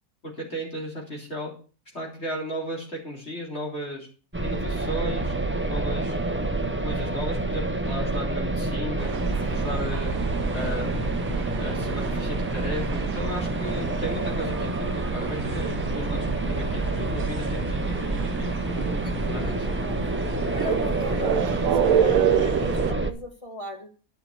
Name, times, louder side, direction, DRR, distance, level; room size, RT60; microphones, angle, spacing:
voice 1, 0.2-1.5 1.9-4.1 4.4-5.3 5.7-6.2 6.8-9.1 9.5-10.1 10.5-11.1 11.6-19.7, equal, 45° left, -2 dB, 4.1 m, -35 dB
sound 1, 4.3-23.1, right 2 dB, 10° right, 0.7 m, -28 dB
sound 2, 9.0-22.9, right 9 dB, 70° right, 1.2 m, -29 dB
voice 2, 19.0-20.0 20.5-23.9, left 1 dB, 20° left, 3 dB, 2.0 m, -38 dB
11.0 x 6.0 x 8.2 m, 0.38 s
omnidirectional pair, 1.6 m